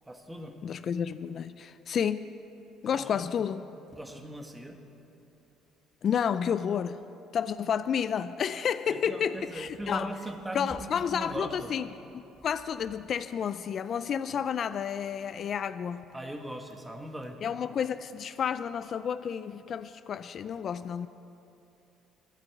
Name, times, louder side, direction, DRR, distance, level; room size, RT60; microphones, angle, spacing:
voice 1, 0.0-0.6 2.9-3.3 3.9-4.8 8.9-11.7 16.1-17.4, right 1 dB, 10° right, 4 dB, 1.4 m, -40 dB
voice 2, 0.6-2.3 2.8-3.6 6.0-7.0 7.3-10.1 10.5-11.9 12.1-16.0 17.4-21.1, left 8 dB, 50° left, 13 dB, 0.3 m, -31 dB
12.5 x 8.9 x 8.3 m, 2.9 s
supercardioid pair, 90°, 0 cm